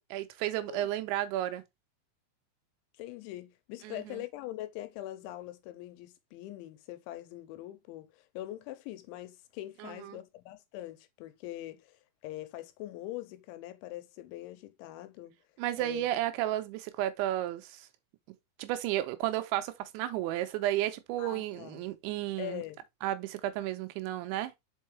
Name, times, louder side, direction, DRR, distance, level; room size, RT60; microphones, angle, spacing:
voice 1, 0.0-1.6 3.8-4.2 9.8-10.2 15.6-17.9 18.6-22.6 23.0-24.5, right 14 dB, 80° right, 3.0 m, -33 dB
voice 2, 3.0-15.3 15.8-16.1 21.2-21.8 22.4-22.8, left 14 dB, 85° left, 3.1 m, -43 dB
5.6 x 5.4 x 3.1 m
omnidirectional pair, 5.4 m